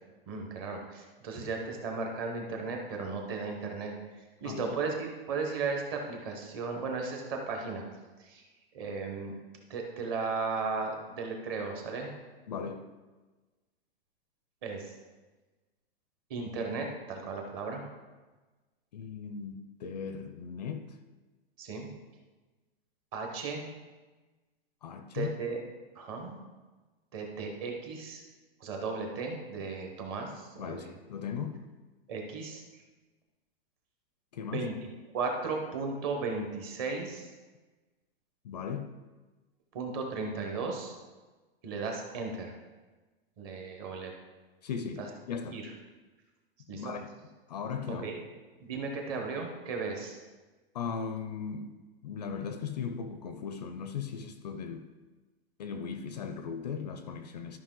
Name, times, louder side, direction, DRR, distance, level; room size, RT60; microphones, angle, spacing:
voice 1, 0.3-3.9 4.4-7.8 8.2-8.4 8.7-9.3 9.7-12.1 14.6-14.9 16.3-17.8 21.6-21.9 23.1-23.6 25.1-25.6 25.9-26.4 27.1-28.2 28.6-30.9 32.1-32.6 34.5-34.7 35.1-37.3 39.7-40.9 41.6-42.5 43.4-44.1 45.0-45.1 45.5-45.6 46.7-46.9 47.9-48.2 48.6-50.2, right 4 dB, 25° right, 2 dB, 0.9 m, -35 dB
voice 2, 4.4-4.8 12.5-12.8 18.9-21.0 24.8-25.3 30.6-31.6 34.3-34.7 38.4-38.9 44.6-45.6 46.7-47.1 47.5-48.2 50.7-51.7 52.0-54.9 55.6-57.6, left 6 dB, 45° left, 8 dB, 0.5 m, -37 dB
12.5 x 5.4 x 3.7 m, 1.2 s
supercardioid pair, 180°, 30 cm